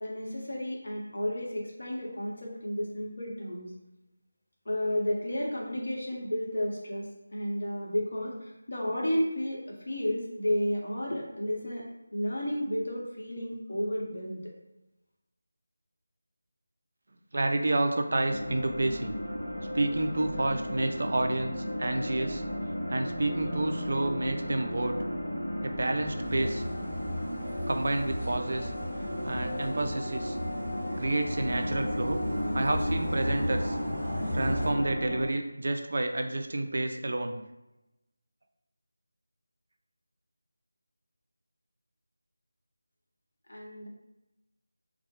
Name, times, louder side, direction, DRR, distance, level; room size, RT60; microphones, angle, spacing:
voice 1, 0.0-3.7 4.7-9.6 9.9-11.8 12.1-14.4 43.5-43.9, left 1 dB, 65° left, -2 dB, 0.7 m, -32 dB
voice 2, 17.3-19.2 19.7-22.4 22.9-25.0 25.6-26.6 27.7-28.7 29.2-30.4 31.0-32.2 32.5-33.8 34.3-37.4, right 2 dB, 55° right, 5 dB, 0.3 m, -29 dB
sound 1, 18.3-35.3, equal, 25° left, 0.7 m, -34 dB
sound 2, 26.2-34.7, equal, 5° left, 1.1 m, -36 dB
2.2 x 2.0 x 2.8 m, 0.94 s
figure-of-eight pair, 175°, 0 cm